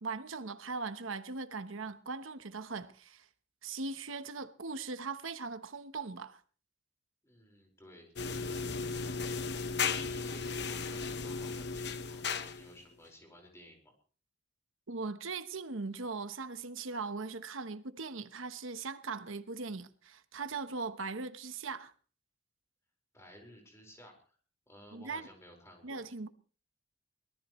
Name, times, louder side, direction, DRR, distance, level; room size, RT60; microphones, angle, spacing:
voice 1, 0.0-3.3 3.6-6.4 14.9-21.9 24.9-25.3 25.8-26.3, right 4 dB, 85° right, 1.1 m, -40 dB
voice 2, 7.2-13.9 23.1-24.4 24.7-26.1, equal, 15° left, 4.9 m, -56 dB
sound 1, 8.2-12.8, left 5 dB, 55° left, 1.0 m, -35 dB
24.0 x 18.0 x 3.2 m
head